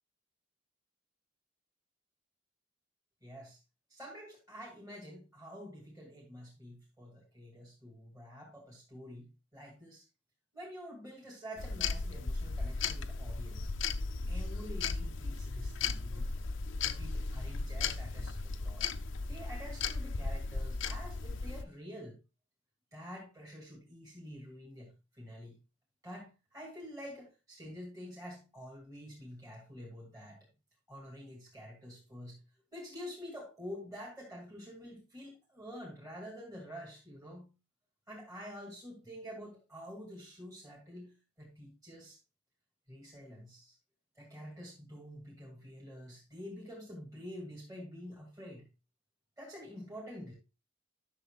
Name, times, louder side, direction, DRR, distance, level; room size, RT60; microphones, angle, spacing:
voice 1, 3.2-3.6 3.9-10.0 10.5-13.7 14.3-16.3 16.8-18.9 19.3-22.2 22.9-25.6 26.0-30.5 30.9-32.4 32.7-37.5 38.1-42.2 42.9-43.8 44.1-48.7 49.4-50.3, equal, 20° right, 2.6 m, -48 dB
sound 1, 11.6-21.6, left 4 dB, 80° left, 0.6 m, -36 dB
11.5 x 6.6 x 2.4 m
head